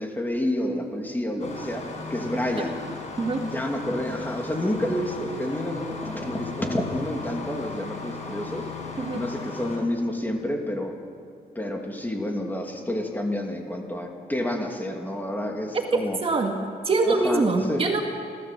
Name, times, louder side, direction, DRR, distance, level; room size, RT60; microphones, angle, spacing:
voice 1, 0.0-1.8 2.1-2.8 3.4-8.7 9.1-10.9 11.5-16.2 17.0-17.8, left 1 dB, 10° left, 1 dB, 2.7 m, -29 dB
Engine starting, 1.4-9.8, left 3 dB, 45° left, 5.4 m, -37 dB
voice 2, 16.2-16.5 16.8-18.0, right 3 dB, 35° right, 2 dB, 2.1 m, -23 dB
30.0 x 14.0 x 7.6 m, 2.5 s
wide cardioid pair, 145°, 16 cm